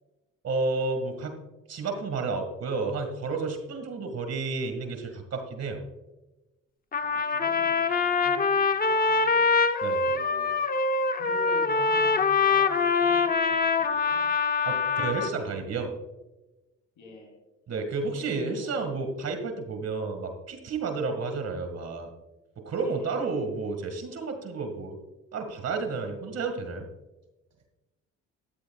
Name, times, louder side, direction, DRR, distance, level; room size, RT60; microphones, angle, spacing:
voice 1, 0.4-1.4 1.7-5.8 9.8-10.0 14.6-15.9 17.7-22.1 22.6-25.0 25.3-26.8, right 4 dB, 55° right, 5 dB, 1.9 m, -31 dB
Trumpet, 6.9-15.3, left 4 dB, 30° left, 0.7 m, -24 dB
voice 2, 7.0-9.5 10.0-10.6 11.1-14.3 17.0-17.4 18.1-19.0 22.8-23.4, left 1 dB, 85° left, -2 dB, 3.2 m, -46 dB
13.5 x 12.5 x 2.4 m, 1.0 s
cardioid pair, 90°, 30 cm